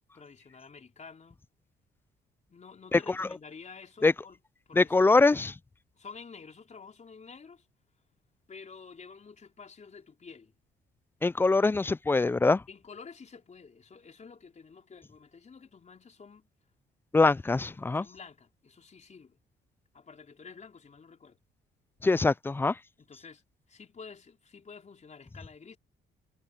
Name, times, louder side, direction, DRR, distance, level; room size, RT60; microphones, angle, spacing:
voice 1, 0.1-1.4 2.5-4.4 4.7-5.2 5.9-7.7 8.5-10.5 12.7-16.5 17.3-19.4 19.9-21.4 23.0-25.8, left 5 dB, 35° left, 4.1 m, -50 dB
voice 2, 2.9-3.3 4.0-4.1 4.8-5.5 11.2-12.6 17.1-18.1 22.0-22.7, left 3 dB, 10° left, 0.3 m, -23 dB
cardioid pair, 90°, 20 cm